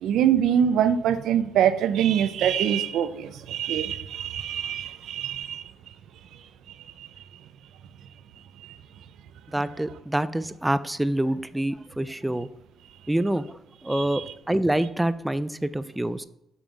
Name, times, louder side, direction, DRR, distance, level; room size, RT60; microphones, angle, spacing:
voice 1, 0.0-5.6 7.0-7.1 8.6-8.8 13.9-14.2, right 9 dB, 80° right, 12 dB, 0.5 m, -24 dB
voice 2, 9.5-12.5 13.1-16.2, right 1 dB, 10° right, 14 dB, 0.3 m, -26 dB
5.8 x 5.5 x 4.0 m, 0.83 s
cardioid pair, 90°, 0 cm